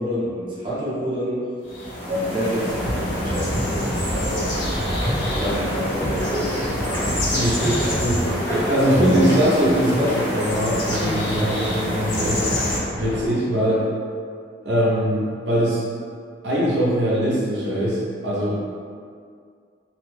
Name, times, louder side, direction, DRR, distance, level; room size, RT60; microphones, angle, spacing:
voice 1, 0.0-1.4 2.1-4.5 5.4-7.0 8.8-9.2, equal, 25° right, -10 dB, 0.8 m, -28 dB
sound 1, 1.7-12.8, equal, 70° left, 0.8 m, -26 dB
sound 2, 2.7-13.3, equal, 15° left, 0.4 m, -29 dB
voice 2, 7.3-12.4 12.9-13.8 14.6-15.8 16.4-18.6, equal, 70° right, -7 dB, 0.6 m, -22 dB
2.8 x 2.1 x 3.1 m, 2.2 s
head